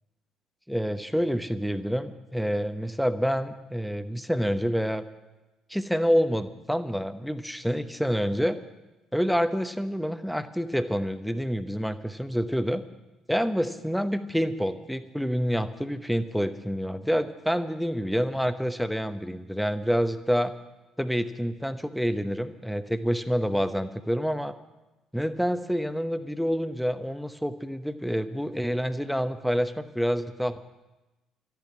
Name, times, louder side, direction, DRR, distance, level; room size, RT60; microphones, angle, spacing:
voice 1, 0.7-5.0 5.7-8.6 9.1-12.8 13.3-20.5 21.0-24.5 25.1-30.6, equal, ahead, 12 dB, 0.9 m, -27 dB
13.5 x 10.5 x 9.5 m, 1.1 s
figure-of-eight pair, 50°, 0 cm